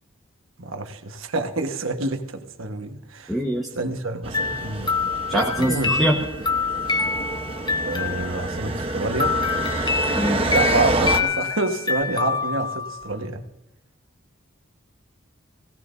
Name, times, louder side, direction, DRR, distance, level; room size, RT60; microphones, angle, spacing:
voice 1, 0.6-3.4 3.7-4.9 5.3-5.9 7.8-9.4 10.5-13.4, right 2 dB, 75° right, 6 dB, 1.4 m, -28 dB
voice 2, 3.3-3.7 5.3-6.2 10.1-10.4, equal, ahead, -1 dB, 1.3 m, -23 dB
sound 1, 4.2-11.2, right 2 dB, 30° right, 1.1 m, -28 dB
sound 2, 4.3-8.7 9.2-13.2, left 4 dB, 20° left, 0.9 m, -26 dB
21.5 x 17.0 x 2.7 m, 0.89 s
head